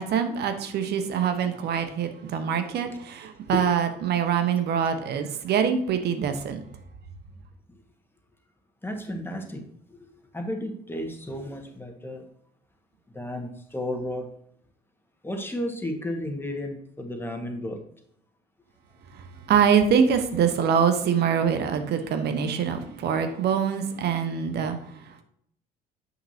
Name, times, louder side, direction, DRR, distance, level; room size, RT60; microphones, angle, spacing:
voice 1, 0.0-6.6 19.1-24.8 25.1-25.2, right 7 dB, 60° right, 8 dB, 1.1 m, -24 dB
voice 2, 8.8-10.1 10.3-12.2 13.1-14.3 15.2-17.8, left 1 dB, 10° left, 3 dB, 1.7 m, -33 dB
7.9 x 5.9 x 2.8 m, 0.69 s
hypercardioid pair, 65°, 19 cm